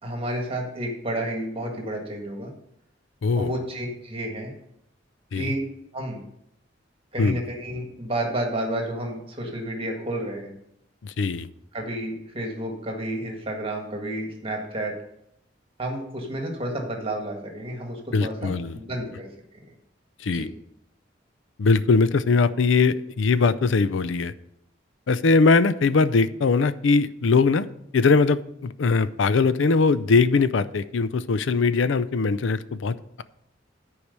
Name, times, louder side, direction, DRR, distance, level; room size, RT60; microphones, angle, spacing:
voice 1, 0.0-2.5 3.3-4.5 5.3-5.6 5.9-6.2 7.1-10.5 11.7-14.9 15.8-19.3 19.5-19.7 20.3-20.5, right 1 dB, 30° right, 1 dB, 1.7 m, -31 dB
voice 2, 11.0-11.5 18.1-18.8 20.2-20.5 21.6-24.3 25.1-27.7 27.9-33.2, left 4 dB, 80° left, 14 dB, 0.5 m, -21 dB
10.0 x 4.8 x 6.7 m, 0.76 s
head